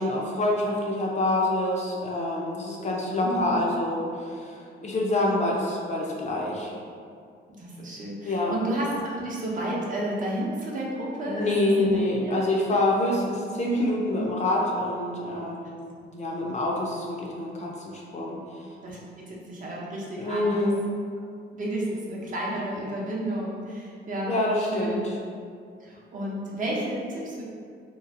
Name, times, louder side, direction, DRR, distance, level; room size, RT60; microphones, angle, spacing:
voice 1, 0.0-6.7 8.2-8.5 11.3-15.8 16.1-18.6 20.2-20.8 24.3-25.1, left 1 dB, 35° left, -3 dB, 0.5 m, -26 dB
voice 2, 3.2-3.6 7.6-11.5 11.8-12.4 16.0-16.1 16.3-16.5 18.8-20.5 21.5-25.0 25.8-27.4, right 1 dB, 40° right, -4 dB, 0.7 m, -32 dB
2.9 x 2.5 x 2.4 m, 2.2 s
cardioid pair, 90°, 20 cm